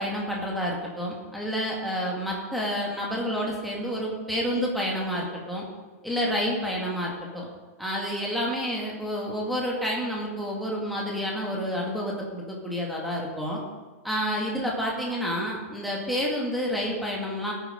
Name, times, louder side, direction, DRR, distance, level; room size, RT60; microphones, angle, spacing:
voice 1, 0.0-5.6 6.0-7.5 7.8-13.6 14.0-17.5, equal, ahead, -3 dB, 2.1 m, -29 dB
18.0 x 9.5 x 5.2 m, 1.3 s
supercardioid pair, 175°, 8 cm